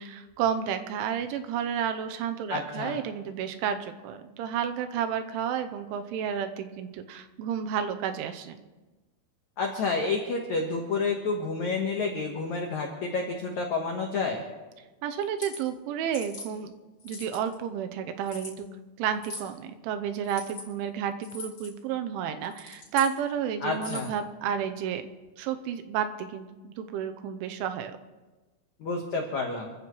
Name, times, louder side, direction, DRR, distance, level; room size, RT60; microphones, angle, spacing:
voice 1, 0.0-8.6 15.0-16.7 17.0-18.7 19.0-25.0 25.4-28.0, right 8 dB, 85° right, 8 dB, 3.2 m, -31 dB
voice 2, 2.5-3.0 9.6-14.4 23.6-24.1 28.8-29.7, left 4 dB, 80° left, 1 dB, 1.6 m, -29 dB
sound 1, 15.2-15.6 16.1-16.5 17.0-17.5 18.3-18.5 19.2-19.5 20.2-20.6 21.2-21.7 22.4-23.1 23.7-24.2, left 3 dB, 30° left, 3.8 m, -41 dB
27.5 x 14.5 x 3.2 m, 1.2 s
omnidirectional pair, 5.5 m